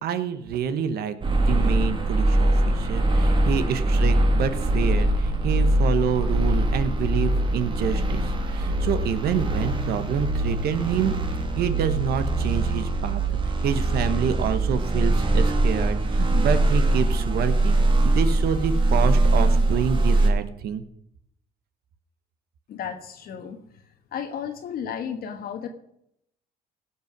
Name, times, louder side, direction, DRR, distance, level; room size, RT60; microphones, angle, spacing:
voice 1, 0.0-11.1 11.6-17.8 18.0-20.8, right 7 dB, 70° right, 11 dB, 1.2 m, -27 dB
sound 1, 1.2-20.3, right 2 dB, 30° right, 1.8 m, -22 dB
voice 2, 22.7-23.6 24.1-25.7, left 8 dB, 60° left, 5 dB, 1.3 m, -33 dB
17.0 x 5.7 x 6.1 m, 0.76 s
cardioid pair, 110°, 17 cm